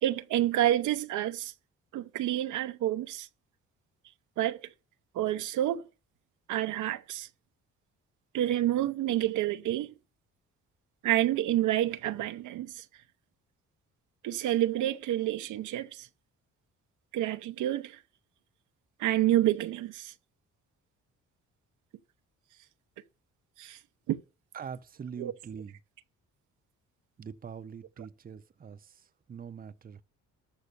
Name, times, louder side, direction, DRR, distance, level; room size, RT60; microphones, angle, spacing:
voice 1, 0.0-1.5 1.9-3.3 4.4-4.6 5.1-5.9 6.5-7.3 8.3-9.9 11.0-12.8 14.2-16.1 17.1-18.0 19.0-20.1 23.6-23.8 24.1-24.2 25.2-25.3, right 13 dB, 80° right, 0.7 m, -28 dB
voice 2, 24.5-25.8 27.2-30.0, right 7 dB, 30° right, 0.6 m, -43 dB
13.5 x 5.4 x 6.7 m
cardioid pair, 90°, 30 cm